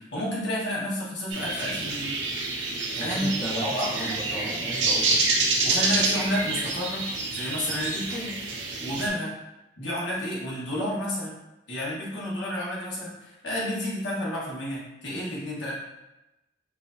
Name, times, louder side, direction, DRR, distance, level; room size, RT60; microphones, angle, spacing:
voice 1, 0.0-2.1 3.0-4.1 5.6-8.4 8.8-9.3 9.8-11.4 11.7-15.7, left 1 dB, 75° left, -5 dB, 1.2 m, -31 dB
sound 1, 1.3-9.1, right 3 dB, 85° right, 0.7 m, -27 dB
voice 2, 3.0-5.2 8.9-9.1, right 1 dB, 10° left, -5 dB, 0.5 m, -36 dB
4.6 x 2.6 x 2.5 m, 0.96 s
head